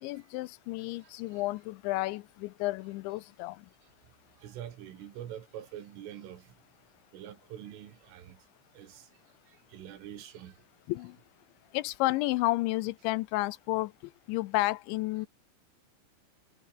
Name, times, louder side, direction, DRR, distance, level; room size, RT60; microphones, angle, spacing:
voice 1, 0.0-3.7 10.9-11.2 11.7-13.9 14.3-15.3, left 19 dB, 80° left, 2.8 m, -31 dB
voice 2, 1.0-1.4 4.4-6.5 7.1-8.4 8.7-9.1 9.5-10.6, right 10 dB, 80° right, 5.0 m, -45 dB
omnidirectional pair, 5.7 m